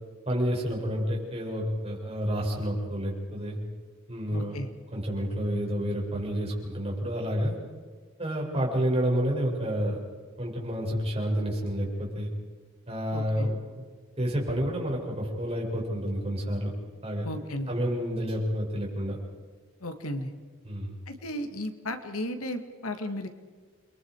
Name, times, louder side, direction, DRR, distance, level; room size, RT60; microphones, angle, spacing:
voice 1, 0.2-3.6 4.1-4.6 4.9-7.5 8.2-10.0 10.4-12.3 12.9-13.8 14.2-16.7 17.0-17.3 17.7-19.2 20.6-20.9, equal, 30° right, -2 dB, 6.8 m, -29 dB
voice 2, 4.3-4.7 13.1-13.5 17.2-17.7 19.8-20.3 21.1-23.3, left 1 dB, 90° left, 7 dB, 2.1 m, -34 dB
30.0 x 23.5 x 4.8 m, 1.5 s
head